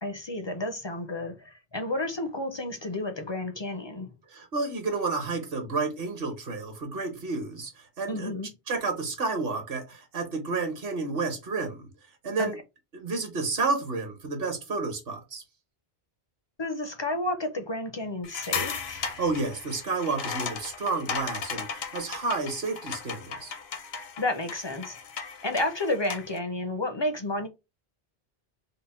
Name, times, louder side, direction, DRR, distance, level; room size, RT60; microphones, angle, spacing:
voice 1, 0.0-4.1 8.1-8.5 12.4-12.5 16.6-19.1 24.2-25.0 25.4-27.5, left 1 dB, 40° left, 0.4 m, -31 dB
voice 2, 4.3-7.7 8.0-8.3 8.7-11.9 12.2-12.6 12.9-15.4 19.0-23.5, right 3 dB, 65° right, 1.2 m, -30 dB
sound 1, 18.2-26.4, left 6 dB, 75° left, 0.9 m, -36 dB
3.7 x 2.1 x 4.1 m
omnidirectional pair, 1.0 m